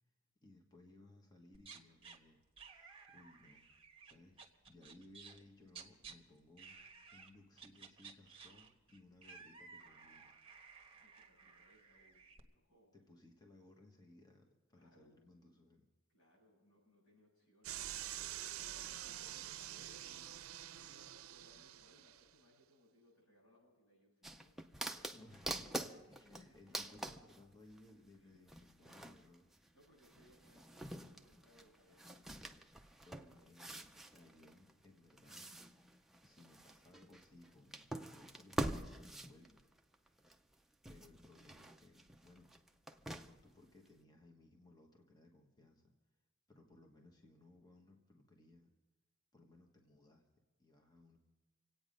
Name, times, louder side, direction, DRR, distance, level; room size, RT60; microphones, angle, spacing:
voice 1, 0.4-2.4 2.7-3.6 4.0-4.4 4.7-6.7 7.1-10.3 12.9-15.9 25.1-29.5 33.0-35.5 36.2-39.6 40.9-42.5 43.3-45.9 46.5-48.7 49.3-50.2 50.6-51.2, left 2 dB, 20° left, 1 dB, 1.3 m, -62 dB
sound 1, 1.5-2.2 2.6-6.1 6.6-7.3 7.6-12.4, right 5 dB, 25° right, 1.2 m, -56 dB
voice 2, 10.9-12.9 14.7-15.2 16.1-20.4 20.7-25.1 25.7-26.0 26.4-26.8 28.1-28.4 29.7-32.7 33.3-33.7, equal, 90° left, -3 dB, 7.2 m, -68 dB
sound 2, 17.6-22.2, right 12 dB, 85° right, 0.5 m, -47 dB
sound 3, 24.2-27.9 28.5-40.5 40.8-43.5 43.9-44.0, right 1 dB, ahead, 0.6 m, -46 dB
26.5 x 8.8 x 5.2 m, 1.2 s
head